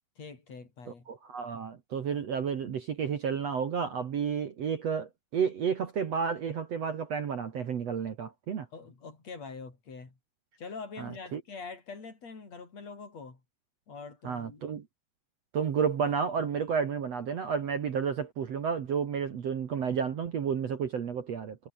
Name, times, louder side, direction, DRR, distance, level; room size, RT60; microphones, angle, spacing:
voice 1, 0.2-1.1 8.7-10.2 10.6-13.4 13.9-14.6, left 4 dB, 40° left, 6.5 m, -44 dB
voice 2, 0.9-8.7 11.0-11.4 14.2-14.9 15.5-21.6, right 6 dB, 50° right, 2.1 m, -31 dB
omnidirectional pair, 4.9 m